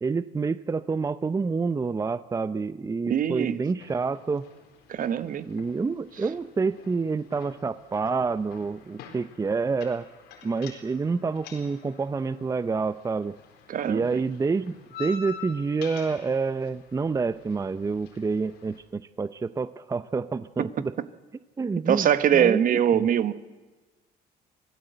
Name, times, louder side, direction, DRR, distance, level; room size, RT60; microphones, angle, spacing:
voice 1, 0.0-4.5 5.4-10.1 10.4-13.4 13.8-20.9 21.6-23.1, right 4 dB, 20° right, 14 dB, 0.6 m, -28 dB
voice 2, 3.1-3.6 4.9-5.5 13.7-14.2 21.9-23.3, right 9 dB, 55° right, 13 dB, 1.2 m, -23 dB
sound 1, 3.8-18.8, left 6 dB, 85° left, 4.0 m, -47 dB
24.5 x 16.5 x 8.0 m, 1.2 s
cardioid pair, 110°, 17 cm